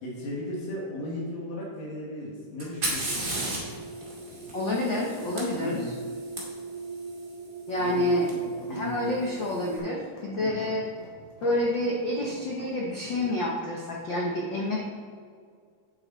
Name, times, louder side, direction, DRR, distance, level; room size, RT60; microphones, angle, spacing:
voice 1, 0.0-3.2 5.6-5.9 7.8-8.9 10.4-10.7, left 1 dB, 85° left, -4 dB, 3.7 m, -36 dB
Fire, 2.6-6.4 8.3-8.4 9.2-9.6, right 2 dB, 30° right, 2.9 m, -34 dB
sound 1, 3.1-9.4, right 3 dB, 80° right, 2.1 m, -40 dB
voice 2, 4.5-5.9 7.7-8.3 8.7-10.8 11.4-14.8, left 1 dB, 70° left, -3 dB, 1.1 m, -28 dB
sound 2, 7.8-13.2, equal, 50° left, 3.4 m, -47 dB
8.9 x 8.8 x 4.0 m, 2.1 s
omnidirectional pair, 3.7 m